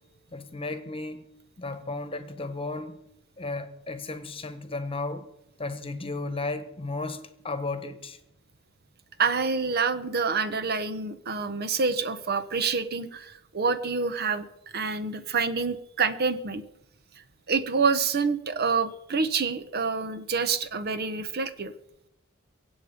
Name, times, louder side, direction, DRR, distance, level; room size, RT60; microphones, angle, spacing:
voice 1, 0.3-1.2 1.6-3.0 3.4-5.2 5.6-7.2 7.4-8.2, left 3 dB, 25° left, 1.3 m, -34 dB
voice 2, 9.2-14.5 14.7-16.6 17.5-21.7, right 5 dB, 50° right, 0.9 m, -27 dB
24.0 x 8.1 x 5.1 m
head